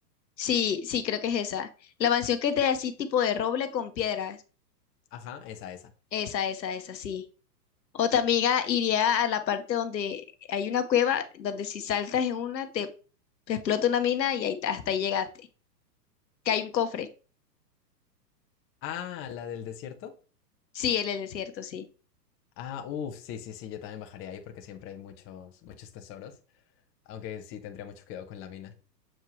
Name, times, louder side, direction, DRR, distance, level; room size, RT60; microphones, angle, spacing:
voice 1, 0.4-1.7 2.0-4.4 6.1-7.2 7.9-10.2 10.5-12.9 13.5-15.3 16.4-17.1 20.7-21.9, left 8 dB, 80° left, 1.1 m, -27 dB
voice 2, 5.1-5.9 18.8-20.1 22.6-26.4 27.1-28.8, left 9 dB, 25° left, 0.9 m, -40 dB
7.5 x 4.5 x 3.1 m
hypercardioid pair, 120°, 50 cm